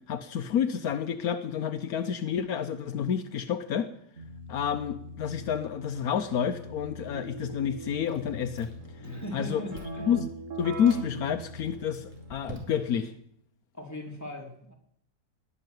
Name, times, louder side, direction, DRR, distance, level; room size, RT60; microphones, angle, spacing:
voice 1, 0.1-3.9 4.5-8.7 9.3-9.6 10.1-10.3 10.6-13.1, left 8 dB, 75° left, 9 dB, 1.3 m, -29 dB
Keyboard (musical), 4.2-12.6, right 1 dB, 55° right, 2.2 m, -42 dB
Chewing mastication, 8.1-9.0 9.3-10.1 10.6-11.1 11.6-13.1, right 1 dB, 5° right, 3.4 m, -46 dB
voice 2, 9.0-10.2 13.7-14.7, left 1 dB, 10° left, 0 dB, 3.2 m, -39 dB
19.5 x 6.6 x 9.3 m, 0.69 s
omnidirectional pair, 1.6 m